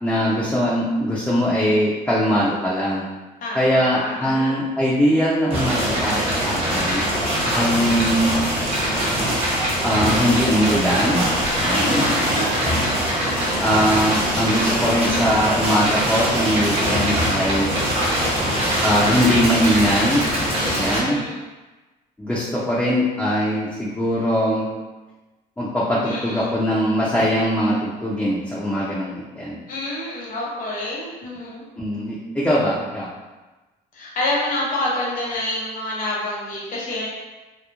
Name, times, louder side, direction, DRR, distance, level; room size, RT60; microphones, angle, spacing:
voice 1, 0.0-3.0 3.5-7.0 7.5-8.4 9.8-11.3 11.6-12.0 13.6-17.8 18.8-20.3 20.8-21.2 22.2-24.7 25.6-29.6 31.8-33.1, equal, 10° left, -8 dB, 0.5 m, -21 dB
voice 2, 3.4-4.7 7.4-7.9 11.6-12.8 18.2-18.8 20.6-21.4 26.0-26.5 29.7-31.7 33.9-37.1, left 1 dB, 55° left, -5 dB, 1.0 m, -28 dB
sound 1, 5.5-21.0, equal, 35° right, 0.8 m, -22 dB
Water, 12.5-19.8, right 2 dB, 85° right, 0.5 m, -35 dB
2.9 x 2.1 x 2.3 m, 1.2 s
cardioid pair, 110°, 17 cm